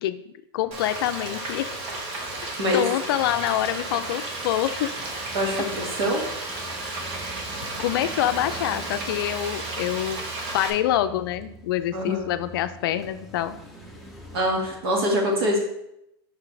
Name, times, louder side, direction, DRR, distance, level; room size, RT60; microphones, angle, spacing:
voice 1, 0.0-1.7 2.7-4.9 7.8-10.2 10.5-13.6, left 12 dB, 60° left, 11 dB, 0.4 m, -26 dB
sound 1, 0.6-14.8, right 1 dB, ahead, 0.8 m, -45 dB
Frying (food), 0.7-10.7, right 2 dB, 40° right, 1.1 m, -33 dB
voice 2, 5.3-6.3 11.9-12.2 14.3-15.6, equal, 65° right, -1 dB, 2.1 m, -24 dB
5.9 x 5.6 x 3.3 m, 0.81 s
supercardioid pair, 150°, 13 cm